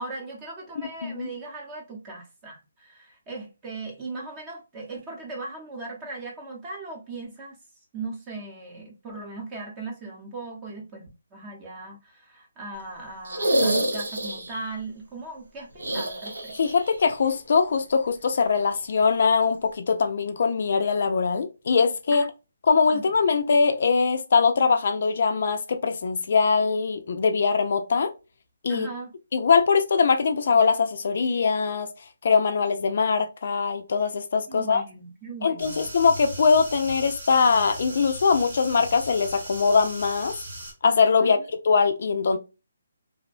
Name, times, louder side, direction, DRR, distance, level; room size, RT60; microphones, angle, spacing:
voice 1, 0.0-7.6 7.9-16.6 22.1-22.3 22.9-23.1 28.7-29.1 34.5-35.9 41.2-41.4, right 3 dB, 15° right, 0.7 m, -38 dB
sound 1, 13.2-14.7 15.8-17.0 17.2-17.3 18.9-19.0, right 1 dB, 85° right, 0.7 m, -27 dB
voice 2, 16.6-22.3 22.7-28.1 28.6-28.9 29.3-31.9 32.2-34.8 35.4-40.3 40.8-41.4 41.6-42.4, left 5 dB, 55° left, 0.3 m, -22 dB
sound 2, 35.6-40.7, right 1 dB, 70° right, 1.2 m, -38 dB
2.5 x 2.1 x 2.4 m
hypercardioid pair, 165°, 0 cm